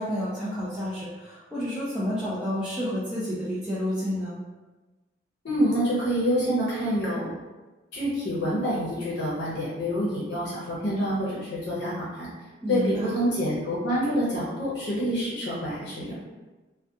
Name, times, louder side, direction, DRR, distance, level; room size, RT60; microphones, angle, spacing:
voice 1, 0.0-4.3 12.6-13.2, equal, 5° right, -12 dB, 0.4 m, -30 dB
voice 2, 5.4-7.4 7.9-12.3 12.7-16.2, equal, 60° left, -7 dB, 0.7 m, -27 dB
2.4 x 2.2 x 2.7 m, 1.2 s
head